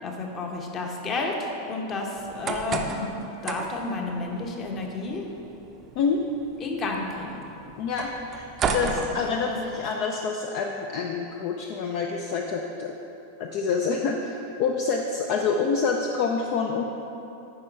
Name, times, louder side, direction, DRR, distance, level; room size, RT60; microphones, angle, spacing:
voice 1, 0.0-5.2 6.6-7.5 8.8-9.6, left 3 dB, 30° left, 1 dB, 1.1 m, -31 dB
sound 1, 2.2-9.9, right 4 dB, 25° right, 0.6 m, -34 dB
voice 2, 7.8-12.9 13.4-16.8, left 5 dB, 45° left, 2 dB, 0.5 m, -27 dB
8.6 x 5.2 x 4.6 m, 3.0 s
figure-of-eight pair, 90°, 0 cm